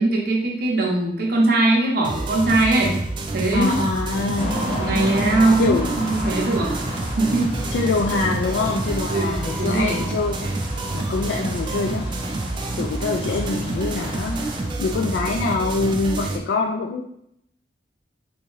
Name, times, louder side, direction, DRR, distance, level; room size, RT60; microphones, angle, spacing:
voice 1, 0.0-2.9 3.3-3.7 4.8-6.7 7.2-7.5 9.1-9.3 9.6-10.0, right 2 dB, 60° right, -2 dB, 0.6 m, -20 dB
sound 1, 2.0-16.4, right 2 dB, 25° right, 0.3 m, -28 dB
voice 2, 3.5-4.7 5.6-5.9 7.7-10.6 10.9-12.1 12.8-14.4 14.8-17.0, left 3 dB, 70° left, 2 dB, 0.3 m, -24 dB
sound 2, 4.4-14.7, left 1 dB, 35° left, 1.1 m, -31 dB
3.4 x 2.7 x 3.1 m, 0.74 s
head